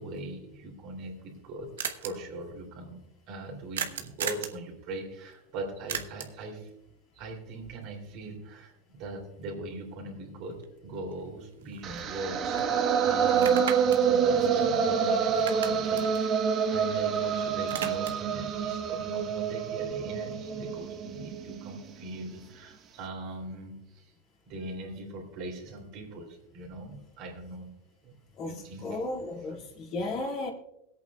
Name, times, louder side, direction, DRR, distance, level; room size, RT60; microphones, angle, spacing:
voice 1, 0.0-1.7 2.0-3.0 3.3-6.7 7.1-24.1 24.5-27.7 28.0-28.2 28.4-29.0 29.5-29.6, right 2 dB, 55° right, 1 dB, 3.1 m, -41 dB
sound 1, 0.8-0.9 1.1-1.2 1.4-1.5 1.8-2.1 3.7-4.6 5.9-6.4 10.6-10.7 11.1-12.3 12.6-12.7 13.3-15.1 15.3-17.2 17.5-18.3, right 8 dB, 90° right, 1.0 m, -36 dB
sound 2, 11.8-21.9, right 7 dB, 40° right, 1.2 m, -27 dB
voice 2, 28.4-30.5, left 2 dB, 45° left, -1 dB, 2.4 m, -34 dB
22.0 x 8.5 x 2.4 m, 0.86 s
hypercardioid pair, 115°, 0 cm